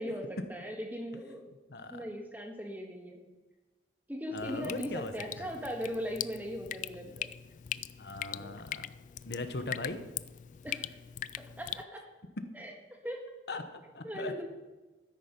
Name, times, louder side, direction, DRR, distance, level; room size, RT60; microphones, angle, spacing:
voice 1, 0.0-1.5 1.9-3.2 4.1-7.3 8.3-8.5 10.6-11.0 11.4-12.0 12.5-12.7 13.0-13.2 14.0-14.4, equal, 10° right, 2 dB, 1.6 m, -39 dB
voice 2, 1.7-2.0 4.3-5.5 8.0-8.8 9.2-10.0 13.5-14.4, left 2 dB, 70° left, 8 dB, 1.0 m, -39 dB
Drip, 4.4-11.8, left 11 dB, 45° left, 0.3 m, -41 dB
13.0 x 10.0 x 5.2 m, 1.2 s
head